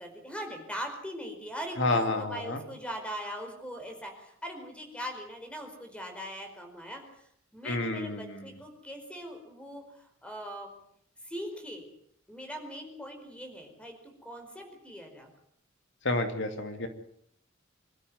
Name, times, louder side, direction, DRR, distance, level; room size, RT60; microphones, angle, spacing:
voice 1, 0.0-10.7 11.2-11.9 12.3-15.3, equal, 5° left, 4 dB, 5.0 m, -41 dB
voice 2, 1.8-2.6 7.6-8.4 16.0-16.9, left 2 dB, 60° left, 6 dB, 2.6 m, -29 dB
26.0 x 13.5 x 9.4 m, 0.69 s
head